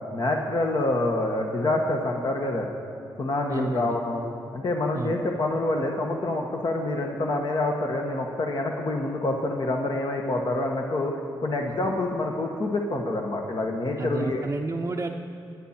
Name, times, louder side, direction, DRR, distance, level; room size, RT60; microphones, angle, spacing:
voice 1, 0.1-2.7 3.2-4.2 4.5-11.1 11.4-14.4, left 2 dB, 50° left, 1 dB, 1.4 m, -27 dB
voice 2, 3.5-4.0 4.9-5.2 14.0-15.1, right 3 dB, 30° right, 1 dB, 0.7 m, -31 dB
24.0 x 8.7 x 4.4 m, 2.8 s
cardioid pair, 65°, 9 cm